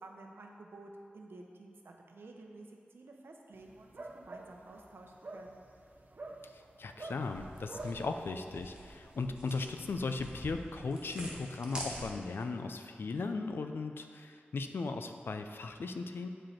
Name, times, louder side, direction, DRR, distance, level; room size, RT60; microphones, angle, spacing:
voice 1, 0.0-5.6, right 2 dB, 80° right, 1 dB, 0.8 m, -52 dB
sound 1, 3.5-9.2, right 2 dB, 50° right, 0.6 m, -49 dB
voice 2, 6.4-16.3, left 3 dB, 75° left, 7 dB, 0.4 m, -37 dB
sound 2, 7.2-12.4, right 1 dB, 25° right, 1.5 m, -47 dB
7.6 x 5.1 x 4.3 m, 2.3 s
wide cardioid pair, 105°, 4 cm